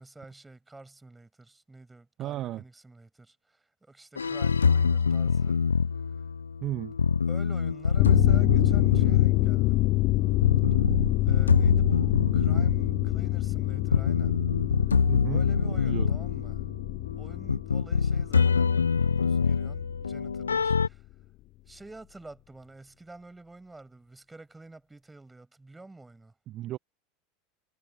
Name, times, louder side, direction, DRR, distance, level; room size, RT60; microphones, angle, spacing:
voice 1, 0.0-5.6 7.3-9.8 11.2-14.3 15.3-16.6 17.2-18.7 19.0-21.0 21.7-26.3, right 2 dB, 10° right, 6.4 m, -49 dB
voice 2, 2.2-2.6 6.6-6.9 15.1-15.4 15.8-16.1 26.5-26.8, right 13 dB, 40° right, 1.3 m, -34 dB
sound 1, 4.2-20.9, left 5 dB, 80° left, 0.6 m, -26 dB
sound 2, 8.0-20.1 20.4-20.5, left 18 dB, 45° left, 0.8 m, -27 dB
figure-of-eight pair, 80°, 0 cm